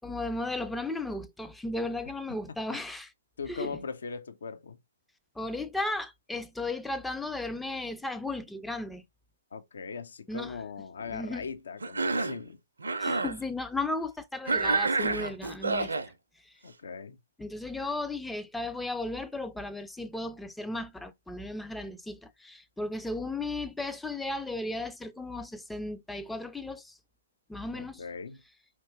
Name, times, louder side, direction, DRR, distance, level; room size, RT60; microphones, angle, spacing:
voice 1, 0.0-3.1 3.5-3.7 5.4-9.0 10.3-10.6 11.1-11.5 13.0-15.9 17.4-27.0 27.5-28.0, left 2 dB, 5° left, 0.4 m, -35 dB
voice 2, 3.4-4.8 9.5-12.6 16.6-17.2 27.7-28.4, left 5 dB, 60° left, 0.5 m, -39 dB
Cough, 11.8-12.4 12.8-13.4 14.5-16.1, right 3 dB, 75° right, 0.5 m, -28 dB
4.5 x 3.0 x 3.0 m
figure-of-eight pair, 120°, 0 cm